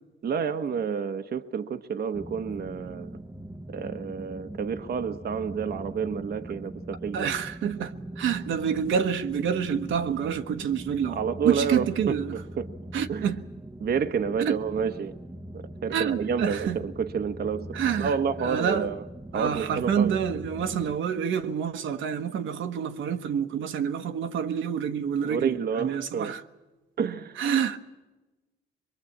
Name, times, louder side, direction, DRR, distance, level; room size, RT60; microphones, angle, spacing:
voice 1, 0.2-3.1 3.7-7.3 11.1-12.7 13.1-13.3 13.8-15.1 15.5-19.0 19.3-20.2 25.2-26.3 27.0-27.4, right 6 dB, 55° right, 1.1 m, -29 dB
sound 1, 2.1-21.0, right 1 dB, 10° right, 0.9 m, -41 dB
voice 2, 7.1-11.2 11.4-12.3 12.9-13.4 14.4-14.6 15.9-16.8 17.7-18.1 18.4-18.9 19.3-26.4 27.4-27.8, right 8 dB, 75° right, 1.3 m, -27 dB
23.0 x 22.5 x 8.6 m
cardioid pair, 90°, 20 cm